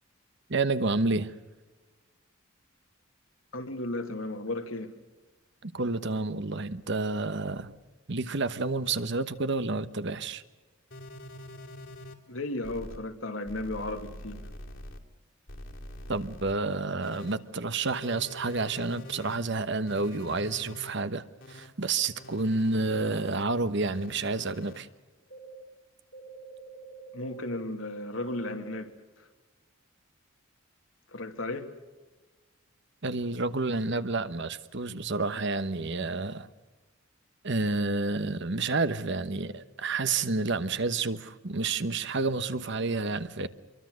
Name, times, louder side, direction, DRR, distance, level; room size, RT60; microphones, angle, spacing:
voice 1, 0.5-1.3 5.6-7.7 8.1-10.4 16.1-24.9 33.0-36.5 37.4-43.5, right 3 dB, 60° right, 1.2 m, -29 dB
voice 2, 3.5-4.9 12.3-14.4 27.1-28.9 29.2-29.3 31.1-31.7, left 2 dB, 80° left, 2.6 m, -34 dB
sound 1, 10.9-12.1 12.6-13.0 13.5-15.0 15.5-16.5 17.0-17.3 17.8-19.4 19.9-20.9 21.4-21.7 22.2-23.4 23.9-24.8 25.3-25.6 26.1-27.6 28.1-28.8, equal, 65° left, 2.9 m, -45 dB
26.0 x 23.5 x 6.5 m
head